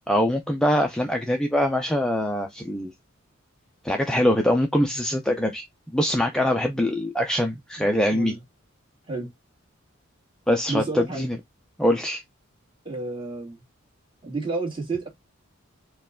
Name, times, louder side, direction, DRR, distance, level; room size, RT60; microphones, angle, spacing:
voice 1, 0.1-2.9 3.8-5.6 5.9-8.3 10.5-11.4 11.8-12.2, equal, 5° left, 0.5 m, -23 dB
voice 2, 7.8-8.4 9.1-9.3 10.7-11.3 12.9-13.6 14.2-15.1, right 3 dB, 25° right, 1.8 m, -31 dB
4.5 x 2.3 x 3.6 m
head